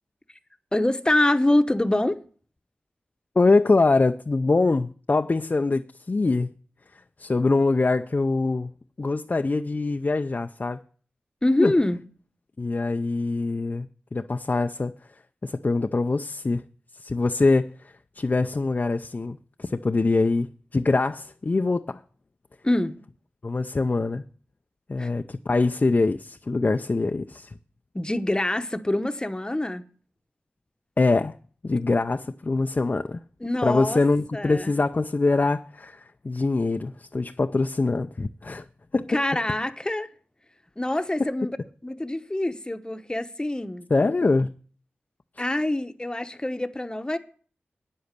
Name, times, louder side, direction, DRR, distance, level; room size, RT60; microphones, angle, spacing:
voice 1, 0.7-2.2 11.4-12.0 22.6-22.9 25.0-25.1 27.9-29.8 33.4-34.0 34.3-34.7 39.1-40.1 40.8-41.5 41.8-43.9 45.4-47.2, left 1 dB, 20° left, 1.0 m, -25 dB
voice 2, 3.3-6.5 6.9-10.8 11.6-11.7 12.6-14.9 15.4-16.6 16.9-22.0 23.4-24.2 24.9-27.6 31.0-31.4 31.6-33.2 33.6-38.7 38.9-39.2 41.2-41.3 43.9-44.5 45.4-45.5, left 3 dB, 40° left, 0.5 m, -24 dB
9.4 x 7.9 x 6.8 m
cardioid pair, 45°, 4 cm